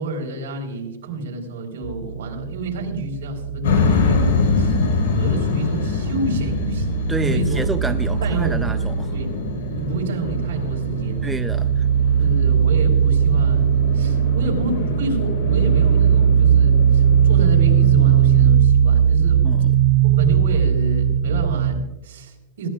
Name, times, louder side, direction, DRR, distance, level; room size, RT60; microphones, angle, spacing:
voice 1, 0.0-4.8 5.1-6.9 7.2-7.6 8.2-8.6 9.1-9.3 9.8-11.3 12.1-19.6 20.0-22.7, right 2 dB, 80° right, 1 dB, 4.5 m, -29 dB
sound 1, 1.8-5.7 5.9-21.7, right 9 dB, 50° right, 0.9 m, -19 dB
sound 2, 3.6-18.4, left 4 dB, 85° left, 4.8 m, -25 dB
voice 2, 7.1-9.1 11.2-11.9 19.4-19.7, right 3 dB, 5° right, 8 dB, 0.5 m, -29 dB
20.5 x 17.0 x 2.4 m, 0.94 s
supercardioid pair, 165°, 0 cm